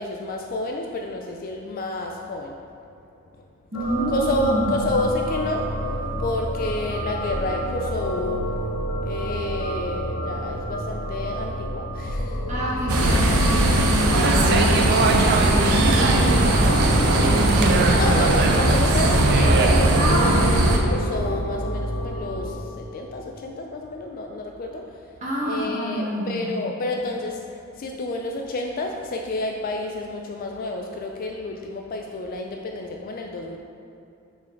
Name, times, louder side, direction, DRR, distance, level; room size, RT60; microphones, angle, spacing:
voice 1, 0.0-2.6 4.1-8.6 9.0-12.4 18.0-25.1 25.4-33.6, left 2 dB, 40° left, 2 dB, 0.3 m, -30 dB
sound 1, 3.7-22.5, equal, 65° left, 0.9 m, -29 dB
voice 2, 3.7-4.8 12.5-18.1 19.9-20.6 25.2-26.5, equal, 35° right, -7 dB, 1.4 m, -27 dB
sound 2, 12.9-20.8, right 1 dB, 85° right, 0.8 m, -20 dB
sound 3, 14.1-20.0, right 3 dB, 50° right, 0.5 m, -23 dB
5.7 x 4.6 x 4.4 m, 2.7 s
head